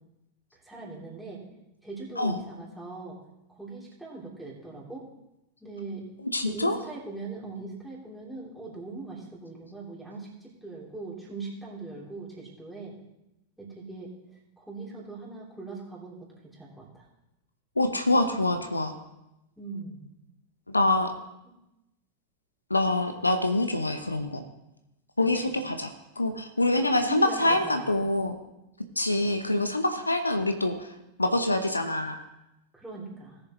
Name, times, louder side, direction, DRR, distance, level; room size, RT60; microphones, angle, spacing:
voice 1, 0.6-1.4 1.8-3.2 3.5-5.0 5.6-6.1 6.4-12.9 13.6-14.1 14.6-17.0 19.6-20.0 25.3-25.6 26.6-27.9 32.7-33.4, right 3 dB, ahead, -6 dB, 3.1 m, -40 dB
voice 2, 6.3-6.8 17.8-18.9 20.7-21.1 22.7-24.4 25.2-25.9 26.2-28.4 29.0-30.9 31.2-32.2, left 2 dB, 80° left, 7 dB, 0.7 m, -25 dB
18.5 x 6.8 x 3.0 m, 0.91 s
figure-of-eight pair, 90°, 0 cm